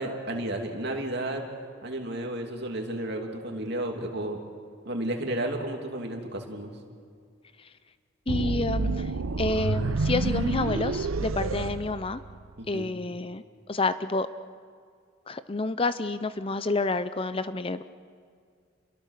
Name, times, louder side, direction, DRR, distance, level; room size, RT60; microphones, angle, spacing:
voice 1, 0.0-1.4 1.8-4.4 4.8-6.7 12.6-12.9, right 1 dB, 55° right, 2 dB, 2.8 m, -32 dB
voice 2, 8.3-9.1 9.4-12.2 12.7-13.4 13.7-14.3 15.3-17.8, left 3 dB, 25° left, 13 dB, 0.5 m, -29 dB
sound 1, 8.3-12.5, right 3 dB, 90° right, 0.7 m, -29 dB
28.5 x 22.0 x 6.7 m, 2.2 s
head